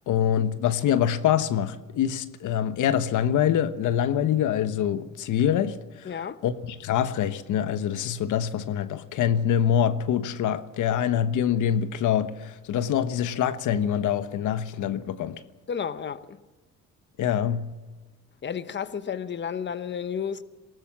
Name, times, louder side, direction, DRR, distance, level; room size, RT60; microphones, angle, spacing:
voice 1, 0.1-6.1 6.4-15.4 17.2-17.7, left 9 dB, 80° left, 1.2 m, -25 dB
voice 2, 6.0-6.4 15.7-16.4 18.4-20.4, left 7 dB, 35° left, 1.1 m, -32 dB
20.0 x 18.5 x 7.4 m
cardioid pair, 90°, 30 cm